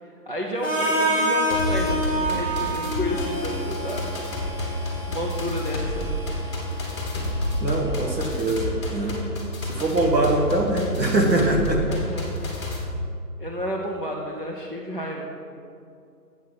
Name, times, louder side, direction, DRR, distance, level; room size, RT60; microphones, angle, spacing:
voice 1, 0.0-4.1 4.7-6.1 11.9-12.4 13.4-15.2, equal, 35° right, -3 dB, 0.5 m, -31 dB
Harmonica, 0.6-8.5, right 1 dB, 5° right, 1.4 m, -29 dB
sound 1, 1.5-12.8, left 1 dB, 15° left, 1.0 m, -29 dB
voice 2, 7.6-9.2 9.6-11.8, right 2 dB, 85° right, 1 dB, 1.9 m, -23 dB
7.6 x 5.5 x 7.0 m, 2.5 s
figure-of-eight pair, 160°, 49 cm